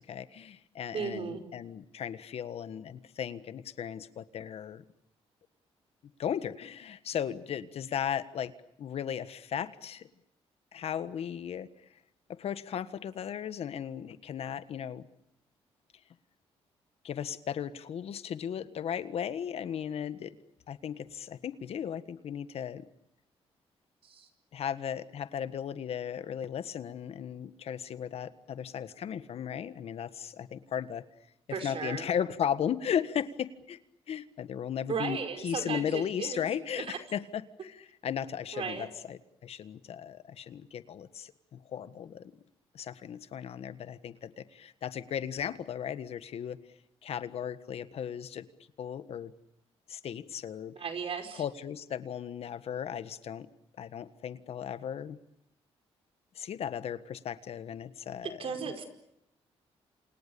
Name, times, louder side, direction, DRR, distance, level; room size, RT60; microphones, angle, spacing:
voice 1, 0.0-4.8 6.2-8.5 8.8-10.1 10.7-11.7 12.3-15.0 17.0-20.4 20.7-22.8 24.5-31.0 31.6-33.8 34.1-42.3 42.7-46.6 47.0-48.4 48.8-49.3 49.9-50.8 51.4-53.5 53.8-55.2 56.3-58.5, left 8 dB, 65° left, 13 dB, 1.5 m, -36 dB
voice 2, 0.9-1.5 24.0-24.3 31.5-32.1 34.9-36.5 36.8-37.0 38.5-38.9 50.7-51.4 58.2-58.8, right 6 dB, 55° right, 6 dB, 5.0 m, -35 dB
28.5 x 28.0 x 6.9 m, 0.80 s
cardioid pair, 95°, 11 cm